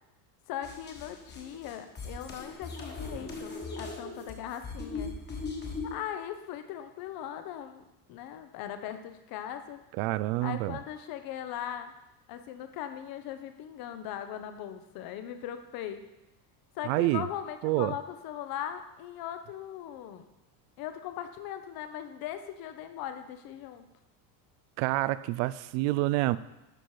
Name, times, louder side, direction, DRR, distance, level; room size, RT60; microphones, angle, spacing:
voice 1, 0.5-5.1 5.8-9.8 10.4-11.9 12.3-16.0 16.7-20.2 20.8-23.9, left 10 dB, 50° left, 9 dB, 0.9 m, -39 dB
sound 1, 0.6-6.0, left 3 dB, 20° left, 1.4 m, -39 dB
voice 2, 10.0-10.8 16.9-17.2 17.6-17.9 24.8-26.4, right 18 dB, 65° right, 16 dB, 0.5 m, -27 dB
12.0 x 4.3 x 4.8 m, 0.97 s
supercardioid pair, 135°, 48 cm